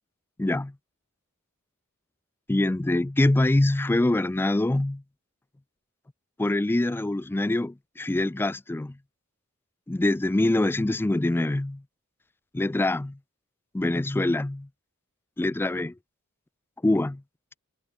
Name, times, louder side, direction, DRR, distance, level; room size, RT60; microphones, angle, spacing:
voice 1, 0.4-0.7 2.5-5.0 6.4-9.0 9.9-11.8 12.5-13.2 13.7-14.7 15.4-15.9 16.8-17.2, left 1 dB, 10° left, 0.3 m, -24 dB
head